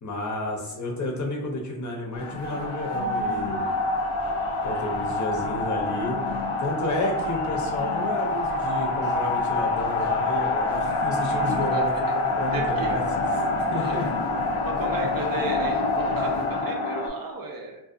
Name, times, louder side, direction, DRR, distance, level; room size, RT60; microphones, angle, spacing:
voice 1, 0.0-3.7 4.6-6.2 6.6-12.1 12.4-13.0 13.7-14.3 14.7-15.1, left 1 dB, 35° left, -1 dB, 0.6 m, -31 dB
sound 1, 2.1-17.1, left 2 dB, 75° left, 0.6 m, -26 dB
voice 2, 12.5-12.9 13.7-14.0 14.6-17.8, right 3 dB, 45° right, 1 dB, 0.4 m, -34 dB
2.5 x 2.2 x 2.4 m, 0.86 s
cardioid pair, 75°, 50 cm